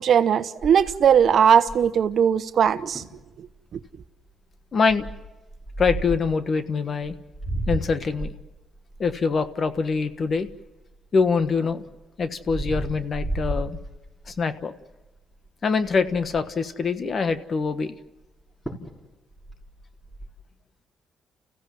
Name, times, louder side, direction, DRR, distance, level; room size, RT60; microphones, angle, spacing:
voice 1, 0.0-3.0, right 8 dB, 60° right, 1.0 m, -19 dB
sound 1, 0.6-2.1 2.6-2.7 3.0-3.2 3.7-4.0 4.9-6.3 7.0-10.9 11.4-14.4 14.9-15.2 15.4-15.5 15.8-16.6 18.2-18.3 18.7-19.0 19.3-20.3, right 1 dB, 10° left, 5.4 m, -33 dB
voice 2, 4.7-5.1 5.8-7.2 7.7-8.3 9.0-10.5 11.1-11.8 12.2-13.8 14.3-14.7 15.6-17.9, left 5 dB, 45° left, 1.4 m, -24 dB
30.0 x 15.5 x 7.6 m
cardioid pair, 90°, 0 cm